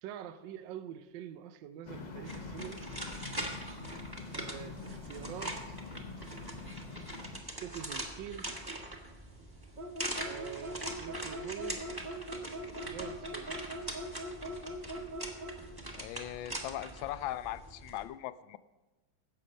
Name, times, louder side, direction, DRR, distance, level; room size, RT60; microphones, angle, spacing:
voice 1, 0.0-2.9 4.3-5.8 7.5-8.5 10.2-11.9 12.8-13.8, right 10 dB, 70° right, 1.3 m, -45 dB
sound 1, 1.9-7.4, left 4 dB, 65° left, 0.4 m, -45 dB
sound 2, 2.3-18.0, right 1 dB, 15° right, 1.2 m, -42 dB
sound 3, 9.8-15.6, equal, 40° right, 0.6 m, -41 dB
voice 2, 15.9-18.6, left 13 dB, 80° left, 1.3 m, -39 dB
16.5 x 6.6 x 5.3 m
omnidirectional pair, 2.2 m